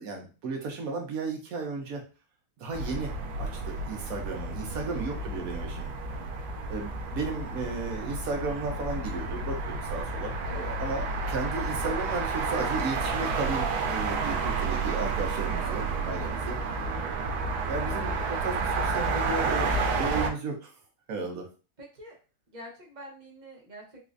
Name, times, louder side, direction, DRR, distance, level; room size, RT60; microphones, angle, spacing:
voice 1, 0.0-2.0 2.6-3.1 3.4-5.9 6.7-16.8 17.7-20.7 21.1-21.5, right 4 dB, 65° right, 2 dB, 1.1 m, -34 dB
sound 1, 2.7-20.3, right 3 dB, 90° right, 1.2 m, -31 dB
voice 2, 4.7-5.1 10.4-10.8 14.2-14.6 15.5-15.8 16.1-16.4 21.1-21.4 21.8-22.2 22.5-24.1, right 1 dB, 30° right, -2 dB, 0.9 m, -46 dB
4.1 x 2.4 x 2.5 m, 0.33 s
omnidirectional pair, 1.7 m